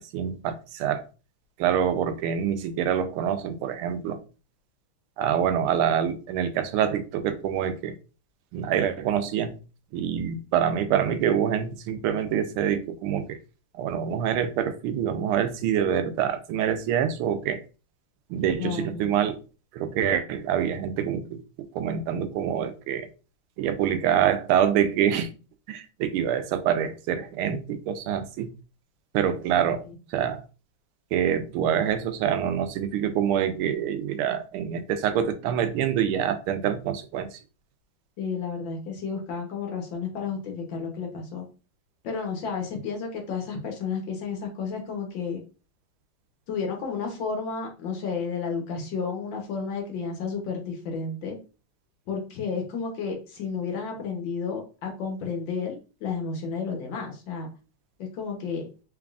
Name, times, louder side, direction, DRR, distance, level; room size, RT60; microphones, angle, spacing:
voice 1, 0.1-1.1 1.6-4.2 5.2-7.9 8.5-9.5 9.9-13.4 13.7-17.6 18.3-19.4 19.7-23.1 23.6-25.3 25.7-28.5 29.1-29.8 30.1-30.4 31.1-37.4, right 9 dB, 85° right, 1.5 m, -26 dB
voice 2, 18.6-19.1 38.2-41.4 42.0-45.4 46.5-51.4 52.1-57.5 58.0-58.6, left 5 dB, 70° left, 1.6 m, -32 dB
3.9 x 3.4 x 2.4 m
omnidirectional pair, 2.3 m